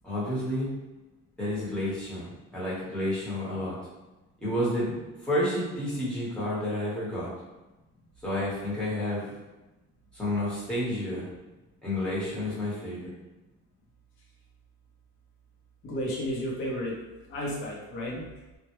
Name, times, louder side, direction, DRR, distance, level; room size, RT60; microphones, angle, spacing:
voice 1, 0.0-0.7 1.4-3.8 4.4-5.0 5.2-7.3 8.2-9.3 10.1-11.3 11.8-13.1, left 1 dB, 5° left, -9 dB, 0.9 m, -30 dB
voice 2, 15.8-17.0 17.3-18.3, equal, 40° left, -4 dB, 0.6 m, -32 dB
2.2 x 2.1 x 2.9 m, 1.1 s
cardioid pair, 140°, 32 cm